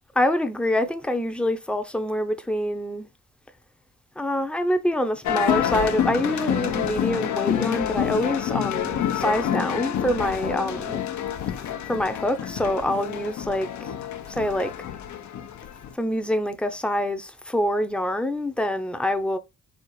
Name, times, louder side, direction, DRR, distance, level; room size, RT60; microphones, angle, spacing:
voice 1, 0.2-3.1 4.2-11.0 11.9-13.7 14.3-14.7 16.0-19.4, left 1 dB, 5° left, 0.6 m, -25 dB
sound 1, 5.2-15.9, left 9 dB, 70° left, 0.8 m, -27 dB
4.2 x 2.4 x 4.7 m
cardioid pair, 90°, 30 cm